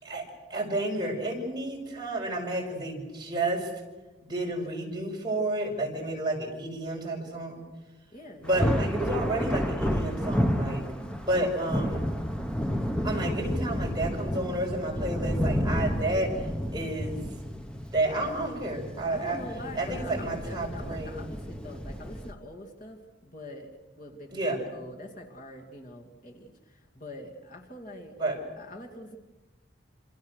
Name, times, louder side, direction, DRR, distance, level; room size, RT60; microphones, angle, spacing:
voice 1, 0.0-3.7 4.2-7.6 8.4-10.8 11.3-12.1 13.0-16.3 16.7-17.3 17.9-19.4 19.8-21.2 24.3-24.6 28.2-28.4, right 1 dB, 20° right, -2 dB, 5.8 m, -31 dB
voice 2, 8.1-8.5 19.1-28.2 28.6-29.2, left 1 dB, 45° left, 1 dB, 2.5 m, -44 dB
Thunder, 8.4-22.3, equal, 5° left, 1.1 m, -31 dB
27.5 x 27.0 x 6.6 m, 1.2 s
head